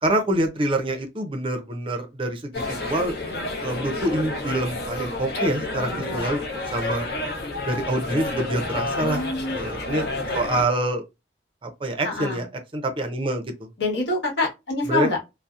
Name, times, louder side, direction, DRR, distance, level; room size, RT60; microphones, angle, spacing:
voice 1, 0.0-3.2 3.6-6.4 6.7-7.1 7.7-9.2 9.5-10.1 10.3-11.0 11.6-12.5 12.7-13.7 14.9-15.1, right 1 dB, 30° right, 0.5 m, -26 dB
sound 1, 2.5-10.6, left 2 dB, 60° left, 0.7 m, -30 dB
voice 2, 5.9-6.3 9.0-9.6 12.0-12.4 13.8-15.2, left 2 dB, 75° left, 1.1 m, -26 dB
2.7 x 2.0 x 2.3 m
head